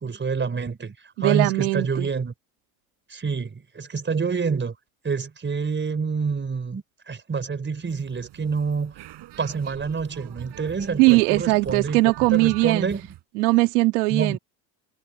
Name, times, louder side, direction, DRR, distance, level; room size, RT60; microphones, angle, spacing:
voice 1, 0.0-2.3 3.1-4.7 5.0-8.9 9.4-12.0 12.3-13.0 14.1-14.4, right 5 dB, 25° right, 4.7 m, -27 dB
voice 2, 1.2-2.1 11.0-12.9 13.4-14.4, right 23 dB, 85° right, 2.6 m, -20 dB
sound 1, 7.8-13.2, right 15 dB, 60° right, 7.9 m, -43 dB
supercardioid pair, 90°, 45 cm